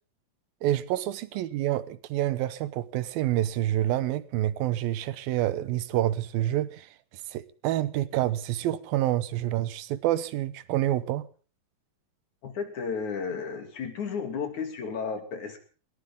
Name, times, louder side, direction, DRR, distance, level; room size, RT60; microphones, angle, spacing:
voice 1, 0.6-6.9 7.3-11.3, right 14 dB, 90° right, 2.8 m, -28 dB
voice 2, 12.4-15.6, left 5 dB, 55° left, 3.9 m, -33 dB
21.0 x 18.5 x 3.7 m
omnidirectional pair, 4.1 m